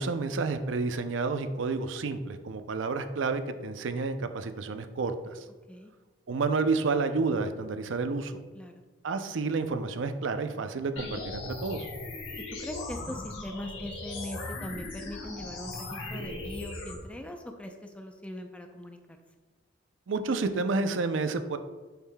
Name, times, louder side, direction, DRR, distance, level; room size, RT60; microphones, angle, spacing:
voice 1, 0.0-5.4 6.3-8.4 9.0-11.9 20.1-21.6, right 4 dB, 85° right, 8 dB, 0.5 m, -30 dB
sound 1, 11.0-17.0, left 2 dB, 80° left, 1.3 m, -38 dB
voice 2, 12.4-19.0, left 1 dB, 5° left, 4 dB, 0.5 m, -41 dB
6.7 x 6.4 x 2.2 m, 1.3 s
head